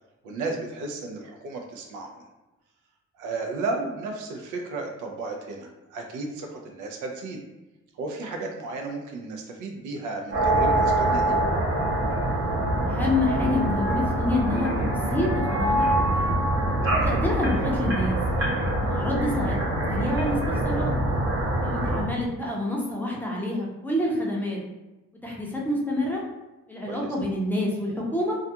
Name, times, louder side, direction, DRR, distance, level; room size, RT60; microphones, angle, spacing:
voice 1, 0.2-2.2 3.2-7.4 8.0-11.4 16.8-17.1 26.9-27.1, right 3 dB, 80° right, 2 dB, 0.5 m, -34 dB
sound 1, 10.3-22.0, right 1 dB, 45° right, 0.9 m, -24 dB
voice 2, 12.8-14.8 15.1-16.3 17.0-18.2 18.8-19.6 19.9-21.0 21.6-24.6 25.2-26.2 26.7-28.4, left 1 dB, 5° left, -3 dB, 0.6 m, -28 dB
2.4 x 2.2 x 2.7 m, 1.0 s
cardioid pair, 90°, 30 cm